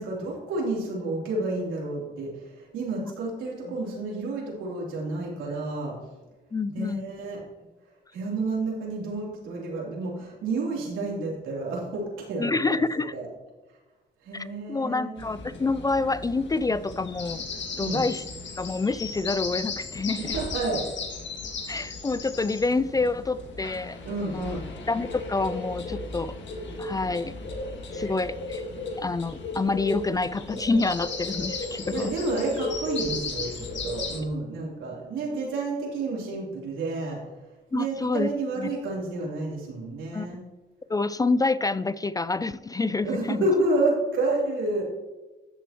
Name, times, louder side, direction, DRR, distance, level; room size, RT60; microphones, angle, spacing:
voice 1, 0.0-6.0 6.7-7.4 8.1-12.8 13.1-13.3 14.2-15.2 17.8-18.0 20.2-20.9 24.0-24.6 31.9-37.2 37.7-40.4 43.0-44.8, right 2 dB, 85° right, -3 dB, 3.4 m, -30 dB
voice 2, 6.5-7.1 12.4-13.2 14.3-17.4 17.8-18.3 18.6-20.4 21.7-24.6 24.9-26.4 26.8-27.3 27.9-28.6 29.0-32.1 37.7-38.3 38.6-38.7 40.1-40.3 40.9-43.4, left 3 dB, 20° left, 15 dB, 0.3 m, -27 dB
sound 1, 15.2-34.2, left 3 dB, 65° left, 1.7 m, -35 dB
13.5 x 6.9 x 3.0 m, 1.2 s
cardioid pair, 90°, 20 cm